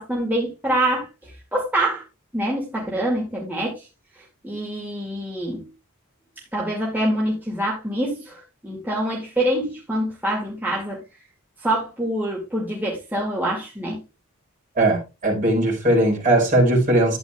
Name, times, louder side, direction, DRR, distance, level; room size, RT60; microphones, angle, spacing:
voice 1, 0.0-2.0 2.3-3.9 4.4-5.7 6.5-11.0 11.6-14.0, right 1 dB, 10° right, 2.1 m, -25 dB
voice 2, 14.8-17.2, right 1 dB, 35° right, 4.5 m, -19 dB
12.0 x 9.1 x 2.3 m
head